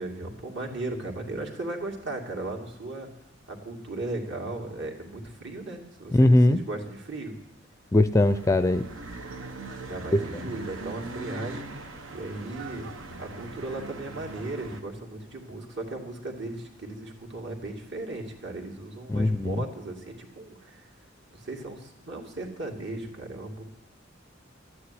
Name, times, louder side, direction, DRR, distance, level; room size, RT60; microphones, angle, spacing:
voice 1, 0.0-3.1 3.5-6.2 6.5-7.3 9.8-11.6 12.1-12.9 13.2-20.9 21.3-23.6, right 2 dB, 60° right, 1 dB, 2.6 m, -36 dB
voice 2, 6.1-6.6 7.9-8.9 10.1-10.3 19.1-19.6, left 1 dB, 15° left, 12 dB, 0.4 m, -20 dB
sound 1, 8.2-14.8, right 2 dB, 80° right, 1.3 m, -40 dB
13.0 x 9.6 x 9.8 m, 0.85 s
head